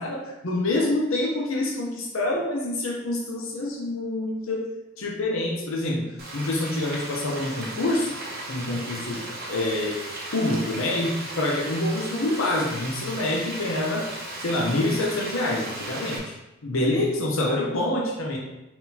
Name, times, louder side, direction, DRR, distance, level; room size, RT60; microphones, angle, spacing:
voice 1, 0.0-4.6 5.0-8.1 8.5-10.0 10.3-16.4 16.6-18.4, left 1 dB, 75° left, -2 dB, 0.7 m, -26 dB
Frying (food), 6.2-16.2, right 1 dB, 50° right, 0.8 m, -36 dB
4.4 x 3.8 x 2.7 m, 0.95 s
head